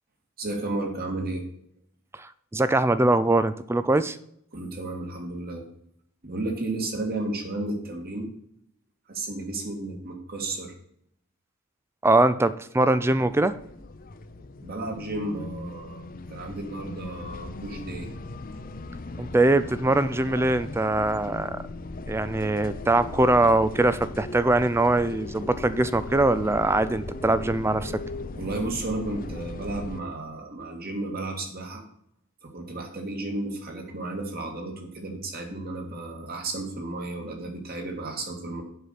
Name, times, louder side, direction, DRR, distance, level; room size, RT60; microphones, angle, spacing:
voice 1, 0.4-1.4 4.5-5.6 6.2-8.3 9.1-10.7 14.6-18.1 28.4-31.8 32.4-38.6, right 2 dB, 45° right, 2 dB, 2.2 m, -33 dB
voice 2, 2.2-4.2 12.0-13.6 19.2-21.6 22.1-27.9, right 2 dB, 10° right, 14 dB, 0.3 m, -22 dB
sound 1, 13.1-30.0, left 2 dB, 40° left, 0.6 m, -38 dB
7.9 x 5.8 x 6.7 m, 0.70 s
head